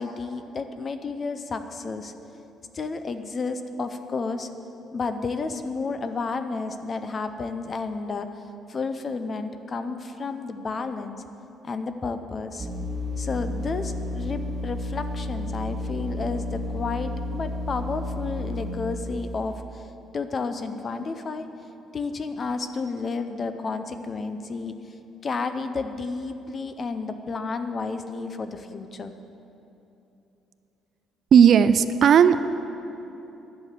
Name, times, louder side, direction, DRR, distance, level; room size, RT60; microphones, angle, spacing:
voice 1, 0.0-2.1 2.7-4.5 4.9-8.3 8.7-11.2 11.6-12.7 13.2-19.8 20.1-21.5 21.9-24.8 25.2-29.1, left 4 dB, 30° left, 9 dB, 0.6 m, -31 dB
sound 1, 12.6-19.1, left 1 dB, 20° right, 1.5 m, -31 dB
voice 2, 31.3-32.4, right 8 dB, 45° right, 12 dB, 0.3 m, -15 dB
11.0 x 6.7 x 9.5 m, 2.9 s
cardioid pair, 165°, 0 cm